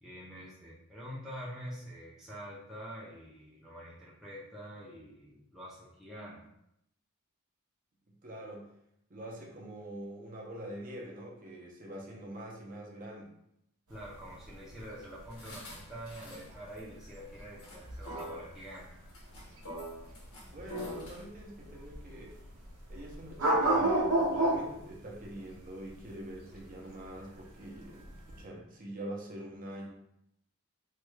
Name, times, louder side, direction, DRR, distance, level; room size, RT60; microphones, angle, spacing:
voice 1, 0.0-6.4 13.9-18.9, equal, ahead, -8 dB, 0.5 m, -46 dB
voice 2, 8.2-8.7 9.1-13.3 20.5-22.4 22.9-29.9, right 1 dB, 40° right, -2 dB, 0.7 m, -44 dB
sound 1, 13.9-28.4, right 1 dB, 80° right, 0.7 m, -33 dB
sound 2, 15.3-16.5 16.8-16.9 17.4-17.8 18.0-18.4 19.1-21.2, equal, 80° left, 1.0 m, -43 dB
3.2 x 2.3 x 3.1 m, 0.78 s
head